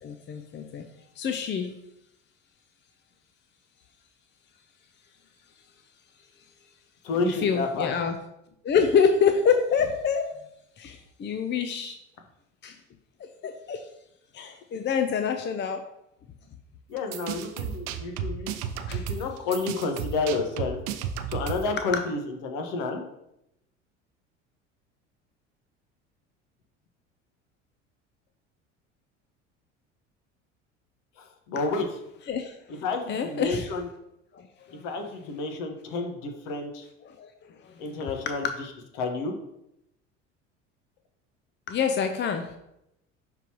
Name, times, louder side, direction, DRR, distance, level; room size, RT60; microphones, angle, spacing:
voice 1, 0.0-0.8 1.2-1.7 7.2-8.2 8.6-10.3 10.8-12.0 12.6-12.8 13.4-13.8 14.3-15.8 18.9-19.0 21.9-22.0 32.3-32.8 33.1-33.7 34.3-34.4 34.7-34.8 37.0-37.3 37.6-37.7 41.7-42.5, left 6 dB, 30° left, 7 dB, 0.7 m, -26 dB
voice 2, 7.0-8.0 16.9-18.5 18.9-20.8 21.3-23.0 31.2-32.0 32.7-33.9 34.8-36.9 37.8-38.5 39.0-39.3, left 3 dB, 60° left, 4 dB, 1.4 m, -30 dB
sound 1, 17.0-21.8, right 7 dB, 60° right, 0.8 m, -33 dB
11.5 x 3.9 x 3.0 m, 0.83 s
hypercardioid pair, 65°, 36 cm